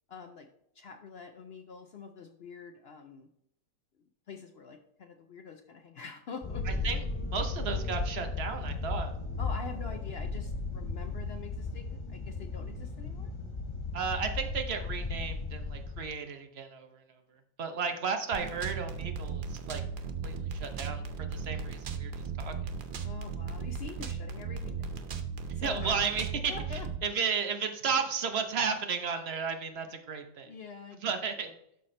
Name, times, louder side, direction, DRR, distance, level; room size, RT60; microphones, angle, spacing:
voice 1, 0.1-0.5 0.7-3.3 4.3-6.9 7.6-7.8 9.4-13.3 18.4-18.6 23.0-25.0 25.5-26.0 26.5-26.9 27.2-27.3 30.5-31.1 31.4-31.5, left 5 dB, 85° left, 5 dB, 0.5 m, -45 dB
sound 1, 6.4-16.0, left 3 dB, 30° left, 0.6 m, -35 dB
voice 2, 6.7-7.0 7.2-9.1 13.9-17.0 17.6-19.8 20.2-22.5 25.6-26.5 27.0-30.5 31.0-31.5, right 5 dB, 50° right, 6 dB, 0.9 m, -33 dB
sound 2, 18.3-27.0, right 5 dB, 80° right, 0.4 m, -36 dB
12.0 x 4.2 x 3.2 m, 0.75 s
omnidirectional pair, 1.8 m